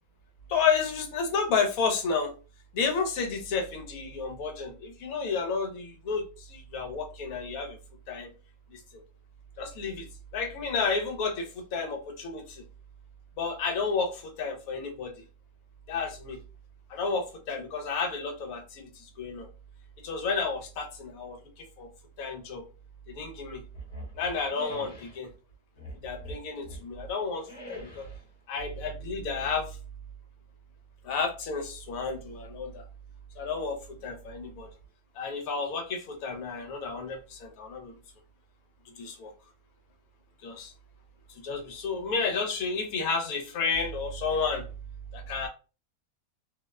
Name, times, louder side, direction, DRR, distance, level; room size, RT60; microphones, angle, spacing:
voice 1, 0.5-2.3 2.7-7.8 8.1-8.3 8.7-8.8 9.6-10.1 10.3-12.6 13.4-15.1 15.9-16.4 16.9-19.5 20.0-21.9 22.2-22.6 23.1-23.6 24.1-25.3 26.0-28.0 28.5-29.8 31.0-32.8 33.4-34.7 35.2-37.9 39.0-39.3 40.4-40.7 41.4-44.7 45.1-45.5, left 5 dB, 75° left, 4 dB, 1.1 m, -31 dB
sound 1, 23.7-25.2 25.8-26.9 27.4-28.3, equal, 30° left, 0.9 m, -43 dB
2.7 x 2.0 x 2.2 m, 0.33 s
omnidirectional pair, 1.6 m